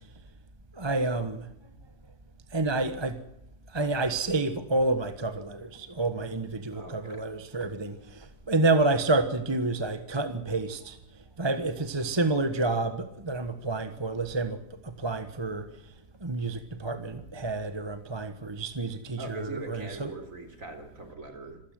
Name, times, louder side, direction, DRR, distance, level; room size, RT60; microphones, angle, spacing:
voice 1, 0.7-1.5 2.5-3.2 3.7-15.8 16.2-20.1, right 2 dB, 15° right, 10 dB, 1.2 m, -29 dB
voice 2, 6.7-7.3 19.2-21.6, right 2 dB, 50° right, 7 dB, 4.2 m, -41 dB
26.5 x 16.0 x 7.7 m, 0.80 s
omnidirectional pair, 1.8 m